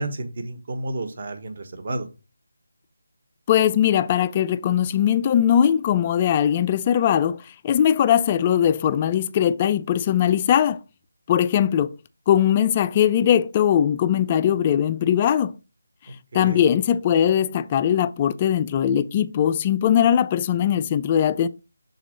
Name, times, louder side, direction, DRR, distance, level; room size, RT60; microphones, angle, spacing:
voice 1, 0.0-2.1 16.3-16.6, right 2 dB, 45° right, 1.3 m, -31 dB
voice 2, 3.5-10.8 11.3-11.9 12.3-15.5 16.3-21.5, left 9 dB, 20° left, 0.3 m, -20 dB
6.6 x 4.0 x 5.0 m
figure-of-eight pair, 170°, 0 cm